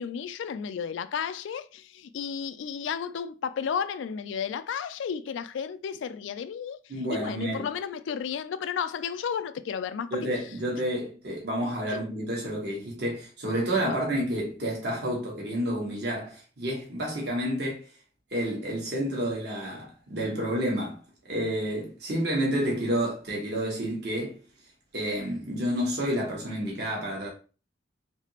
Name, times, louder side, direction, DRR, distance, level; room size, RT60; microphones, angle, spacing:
voice 1, 0.0-10.3 11.9-12.0 13.8-13.9, left 7 dB, 75° left, 0.3 m, -33 dB
voice 2, 6.9-7.7 10.1-17.8 18.3-21.0 21.3-24.4 24.9-27.3, equal, 55° right, 1.1 m, -30 dB
3.3 x 2.8 x 2.8 m
head